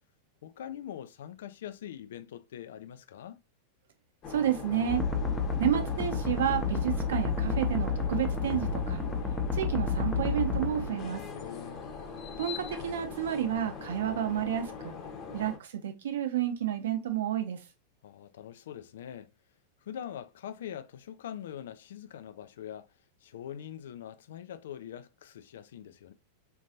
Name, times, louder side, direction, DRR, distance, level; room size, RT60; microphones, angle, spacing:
voice 1, 0.4-3.4 11.3-11.9 18.0-19.3 19.9-22.9 23.2-26.1, left 10 dB, 60° left, 0.3 m, -43 dB
sound 1, 4.2-15.6, left 5 dB, 35° left, 0.8 m, -42 dB
voice 2, 4.3-5.0 5.6-9.0 9.5-11.2 12.4-15.0 15.3-17.6, right 10 dB, 60° right, 0.6 m, -30 dB
sound 2, 4.9-11.4, left 4 dB, 5° left, 0.6 m, -31 dB
3.8 x 2.6 x 2.7 m
figure-of-eight pair, 90°, 0 cm